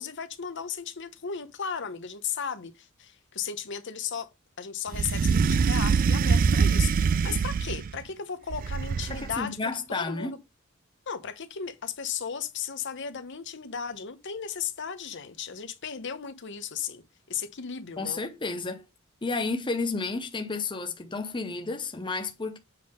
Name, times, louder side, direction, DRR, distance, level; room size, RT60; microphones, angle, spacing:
voice 1, 0.0-4.3 4.6-9.6 9.9-10.4 11.1-17.0 17.3-18.2, left 7 dB, 60° left, 1.0 m, -35 dB
sound 1, 4.9-8.0 8.5-9.4, right 5 dB, 40° right, 0.3 m, -24 dB
voice 2, 9.1-10.3 18.0-18.8 19.2-22.6, left 3 dB, 25° left, 0.7 m, -31 dB
7.6 x 3.6 x 5.2 m
head